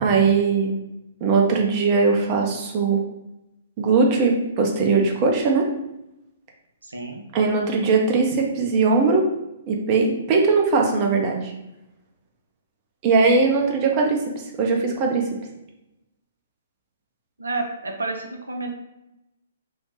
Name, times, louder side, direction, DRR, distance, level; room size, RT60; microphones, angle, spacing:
voice 1, 0.0-0.8 1.2-3.0 3.8-5.7 7.3-9.2 9.7-11.5 13.0-14.2 14.6-15.3, right 4 dB, 35° right, 1 dB, 0.6 m, -20 dB
voice 2, 6.8-7.2 17.4-18.7, right 3 dB, 80° right, 3 dB, 0.5 m, -30 dB
3.2 x 2.1 x 2.9 m, 0.90 s
figure-of-eight pair, 125°, 0 cm